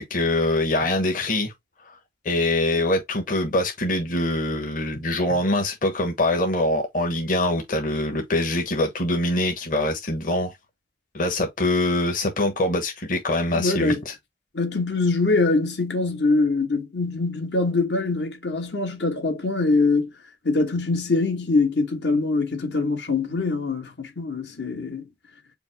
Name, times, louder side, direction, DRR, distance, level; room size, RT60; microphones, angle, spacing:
voice 1, 0.0-1.5 1.9-2.0 2.2-10.5 11.1-14.1, left 1 dB, 50° left, 1.2 m, -24 dB
voice 2, 13.5-14.0 14.5-20.1 20.4-25.0, left 3 dB, 75° left, 1.4 m, -23 dB
5.2 x 2.0 x 4.6 m
head